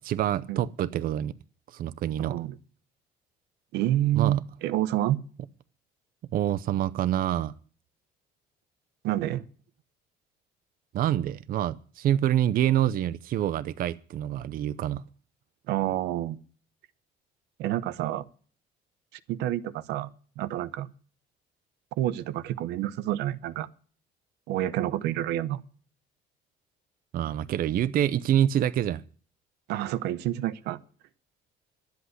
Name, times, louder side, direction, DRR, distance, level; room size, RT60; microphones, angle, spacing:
voice 1, 0.0-1.3 1.7-2.4 4.1-4.4 6.3-7.5 10.9-15.0 27.1-29.0, right 11 dB, 55° right, 0.6 m, -26 dB
voice 2, 2.2-2.6 3.7-5.2 9.0-9.4 15.7-16.4 17.6-18.2 19.3-20.1 20.4-20.9 22.0-23.7 24.5-25.6 29.7-30.8, right 13 dB, 90° right, 0.8 m, -28 dB
11.5 x 8.1 x 9.4 m
cardioid pair, 110°, 17 cm